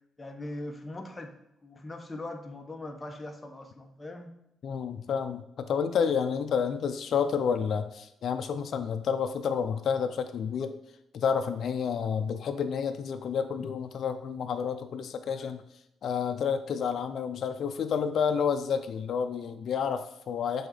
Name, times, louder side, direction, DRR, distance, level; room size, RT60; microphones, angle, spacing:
voice 1, 0.2-1.3 1.6-4.3, left 2 dB, 20° left, 3 dB, 1.0 m, -40 dB
voice 2, 4.6-10.7 11.1-15.6 16.0-20.7, left 6 dB, 60° left, 8 dB, 0.5 m, -30 dB
6.5 x 4.2 x 4.0 m, 0.83 s
cardioid pair, 90°, 0 cm